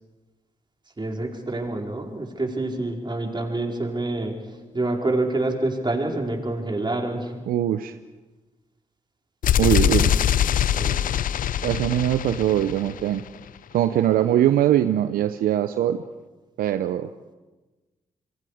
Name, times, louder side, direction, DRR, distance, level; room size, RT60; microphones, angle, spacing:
voice 1, 1.0-4.4 4.7-7.3 9.6-10.3 10.7-11.0, right 2 dB, 30° right, 1 dB, 4.9 m, -27 dB
voice 2, 7.5-7.9 9.6-10.1 11.6-13.2 13.7-16.0 16.6-17.1, right 11 dB, 80° right, 11 dB, 0.7 m, -22 dB
sound 1, 9.4-13.3, left 10 dB, 70° left, 0.6 m, -23 dB
27.5 x 23.0 x 5.0 m, 1.2 s
hypercardioid pair, 40°, 15 cm